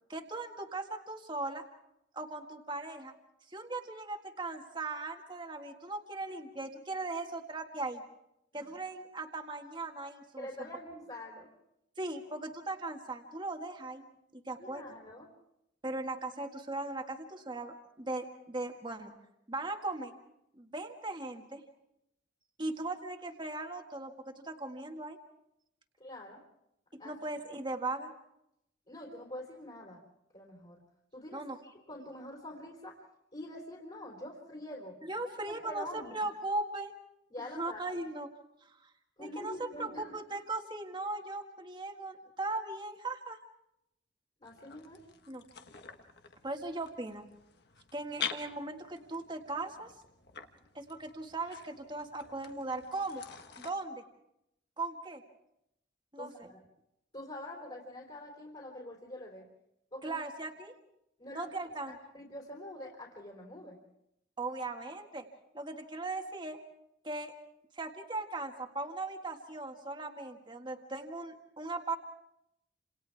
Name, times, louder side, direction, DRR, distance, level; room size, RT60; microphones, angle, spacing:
voice 1, 0.1-1.6 2.1-3.1 3.5-8.0 8.5-10.5 12.0-14.0 14.3-14.8 15.8-19.1 19.5-20.1 20.5-21.6 22.6-25.2 27.0-28.1 31.3-31.6 35.1-36.9 37.5-38.3 38.7-38.8 39.2-43.4 45.3-45.4 46.4-47.3 47.9-49.9 50.7-53.2 53.6-54.0 54.8-55.2 56.1-56.5 60.0-60.7 61.3-62.0 64.4-65.2 65.5-66.6 67.0-67.3 67.7-72.0, right 2 dB, 25° right, 3 dB, 1.8 m, -38 dB
voice 2, 10.4-11.5 14.6-15.3 26.0-26.4 27.0-27.2 28.9-30.0 30.3-30.8 31.1-33.0 33.3-35.0 35.5-36.1 37.3-37.8 39.2-40.2 44.4-45.0 56.2-56.3 57.1-59.5 59.9-60.2 61.2-61.5 61.9-63.8, left 1 dB, 30° left, -2 dB, 3.9 m, -45 dB
sound 1, 44.4-53.7, left 8 dB, 60° left, 1.5 m, -46 dB
29.0 x 27.5 x 3.5 m, 0.79 s
head